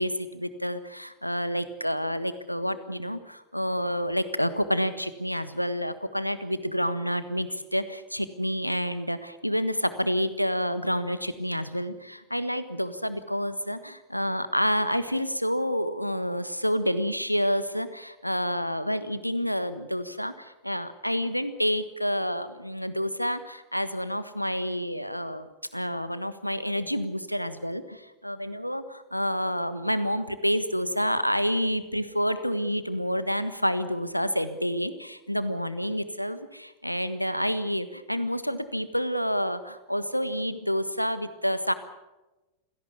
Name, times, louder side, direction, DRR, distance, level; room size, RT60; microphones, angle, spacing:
voice 1, 0.0-41.7, equal, 90° left, 13 dB, 1.4 m, -29 dB
26.0 x 17.5 x 8.4 m, 1.1 s
figure-of-eight pair, 90°, 0 cm